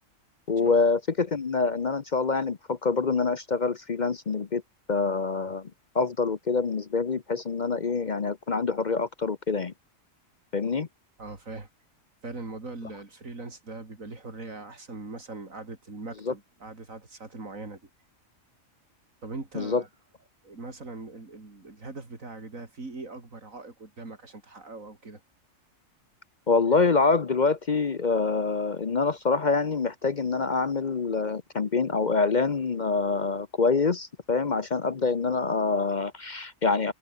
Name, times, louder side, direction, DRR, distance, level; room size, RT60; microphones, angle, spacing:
voice 1, 0.5-4.6 4.9-9.7 10.5-10.9 16.3-16.4 19.5-19.8 26.5-36.9, left 4 dB, 40° left, 0.8 m, -26 dB
voice 2, 11.2-11.7 12.2-17.9 19.2-19.9 20.4-25.2, right 3 dB, 85° right, 4.2 m, -41 dB
omnidirectional pair, 1.4 m